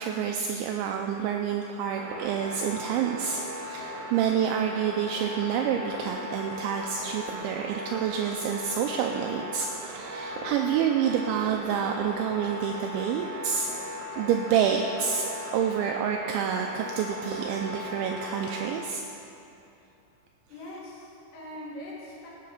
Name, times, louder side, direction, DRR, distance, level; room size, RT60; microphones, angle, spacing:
voice 1, 0.0-13.7 14.2-19.0, right 8 dB, 90° right, 3 dB, 2.6 m, -28 dB
sound 1, 2.0-18.7, equal, 70° right, 2.8 m, -38 dB
voice 2, 20.5-22.3, left 1 dB, 80° left, -5 dB, 5.0 m, -41 dB
17.5 x 7.4 x 5.7 m, 3.0 s
omnidirectional pair, 5.9 m